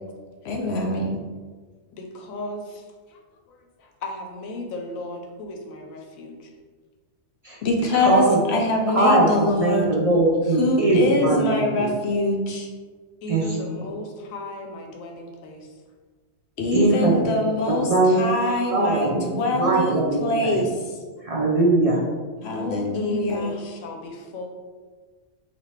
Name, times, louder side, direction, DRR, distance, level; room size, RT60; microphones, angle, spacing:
voice 1, 0.4-1.1 7.6-9.9 10.6-12.7 16.6-20.7 22.4-23.5, left 1 dB, 65° left, 1 dB, 0.7 m, -24 dB
voice 2, 1.9-6.5 13.2-15.8 22.4-24.5, left 1 dB, 85° left, 2 dB, 1.1 m, -36 dB
voice 3, 7.9-8.4 8.9-11.9 13.3-13.4 16.7-17.3 17.7-18.2 18.5-20.6 21.2-22.0, right 2 dB, 50° right, -4 dB, 0.4 m, -21 dB
4.1 x 2.8 x 3.2 m, 1.5 s
omnidirectional pair, 1.4 m